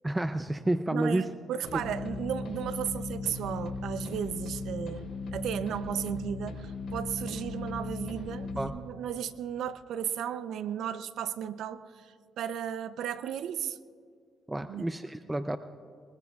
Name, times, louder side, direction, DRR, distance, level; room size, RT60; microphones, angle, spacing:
voice 1, 0.0-1.3 8.6-8.7 14.5-15.6, right 1 dB, 10° right, 10 dB, 0.5 m, -30 dB
voice 2, 0.9-13.8 14.7-14.9, right 9 dB, 75° right, 14 dB, 0.6 m, -35 dB
sound 1, 1.7-8.7, left 3 dB, 65° left, 4.5 m, -37 dB
22.0 x 21.0 x 2.4 m, 2.2 s
cardioid pair, 90°, 0 cm